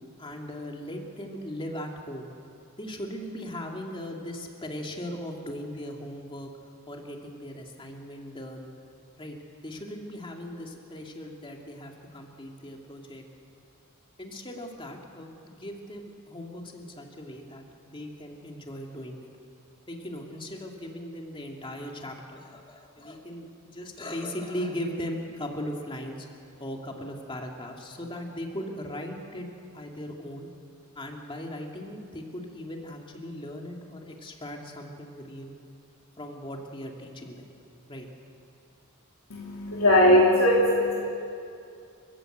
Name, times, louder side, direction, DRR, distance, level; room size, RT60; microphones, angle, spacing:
voice 1, 0.2-2.3 2.8-6.5 6.9-8.7 9.2-9.4 9.6-13.2 14.2-19.3 19.9-26.3 26.6-29.5 29.7-30.5 30.9-35.6 36.2-37.5 37.9-38.1, left 1 dB, 25° left, 1 dB, 2.4 m, -38 dB
voice 2, 39.3-41.1, left 1 dB, 75° left, -4 dB, 3.0 m, -20 dB
29.5 x 15.0 x 8.0 m, 2.5 s
head